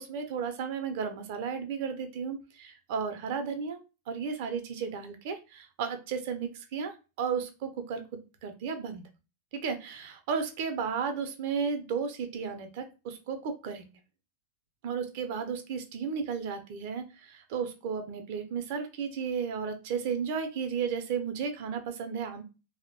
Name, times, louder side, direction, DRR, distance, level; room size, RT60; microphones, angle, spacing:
voice 1, 0.0-3.8 4.1-9.0 9.5-13.9 14.8-22.4, right 6 dB, 50° right, 7 dB, 0.4 m, -34 dB
2.7 x 2.0 x 2.5 m, 0.30 s
figure-of-eight pair, 90°, 0 cm